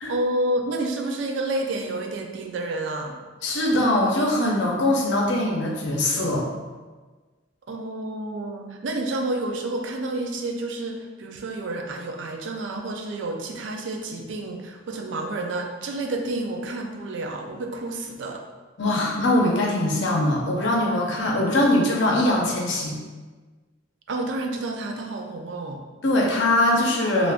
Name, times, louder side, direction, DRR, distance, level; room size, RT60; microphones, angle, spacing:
voice 1, 0.1-3.2 7.7-18.4 24.1-25.8, right 2 dB, 70° right, 3 dB, 0.4 m, -29 dB
voice 2, 3.4-6.4 18.8-23.0 26.0-27.3, left 1 dB, 65° left, -1 dB, 0.6 m, -22 dB
2.4 x 2.4 x 3.4 m, 1.3 s
head